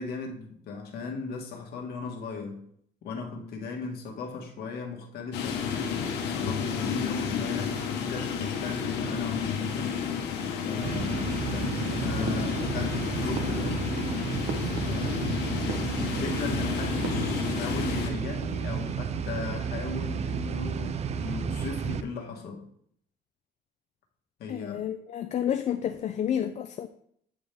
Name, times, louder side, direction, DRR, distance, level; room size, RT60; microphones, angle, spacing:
voice 1, 0.0-2.7 3.0-5.6 6.3-9.9 10.7-13.8 14.9-15.2 15.5-22.7 24.4-24.8, left 4 dB, 65° left, 1.7 m, -37 dB
sound 1, 5.3-18.1, left 6 dB, 85° left, 1.2 m, -31 dB
sound 2, 10.8-22.0, right 6 dB, 40° right, 0.5 m, -32 dB
sound 3, 12.2-13.0 13.3-15.3 15.6-16.4 17.0-18.0 18.3-18.8, right 6 dB, 80° right, 0.9 m, -41 dB
voice 2, 24.5-26.9, left 9 dB, 45° left, 0.5 m, -30 dB
8.9 x 5.0 x 3.5 m
cardioid pair, 110°, 17 cm